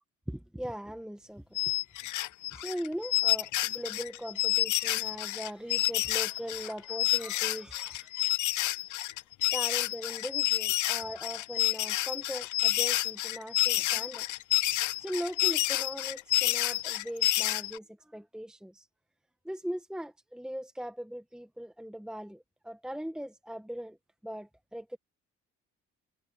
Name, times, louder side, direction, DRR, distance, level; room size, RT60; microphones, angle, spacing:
voice 1, 0.3-1.4 2.5-8.1 9.5-14.3 15.0-17.8 18.1-18.8 19.4-24.0 24.2-25.0, equal, ahead, 1.3 m, -39 dB
sound 1, 1.6-17.8, left 17 dB, 75° left, 0.6 m, -29 dB
cardioid pair, 90°, 30 cm